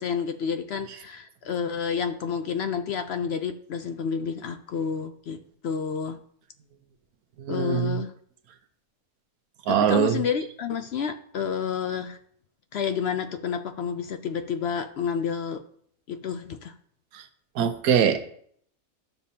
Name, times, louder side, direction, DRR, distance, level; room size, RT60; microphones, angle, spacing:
voice 1, 0.0-6.2 7.5-8.1 9.7-12.2 12.7-15.6 16.1-16.7, left 7 dB, 65° left, 9 dB, 0.7 m, -30 dB
voice 2, 7.4-7.9 9.7-10.2 17.1-17.2 17.6-18.2, right 8 dB, 90° right, 10 dB, 1.3 m, -22 dB
12.0 x 6.8 x 2.8 m, 0.63 s
omnidirectional pair, 1.5 m